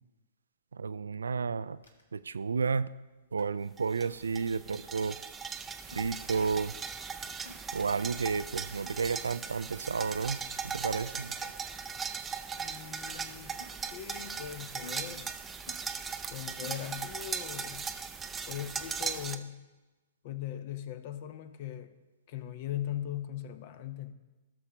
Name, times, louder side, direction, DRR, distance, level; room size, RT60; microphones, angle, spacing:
voice 1, 0.7-1.8 2.1-2.9 3.3-5.2 5.9-6.7 7.7-11.5, right 5 dB, 70° right, 15 dB, 0.3 m, -32 dB
sound 1, 1.8-2.0 3.4-3.5 4.0-4.1 5.1-5.2 5.9-6.0 7.4-7.5 8.8-8.9 10.2-10.3 11.0-11.1 11.4-11.5 13.1-13.2 13.6-13.7 14.8-15.2 15.7-15.8 16.6-17.0 17.8-18.0, left 1 dB, 70° left, 1.5 m, -48 dB
sound 2, 3.8-19.4, right 6 dB, 15° right, 0.5 m, -39 dB
voice 2, 12.6-15.3 16.3-17.9 18.5-19.6 20.2-21.9 22.3-24.1, left 11 dB, 45° left, 11 dB, 0.8 m, -40 dB
17.0 x 6.7 x 3.0 m, 1.1 s
figure-of-eight pair, 110°, 0 cm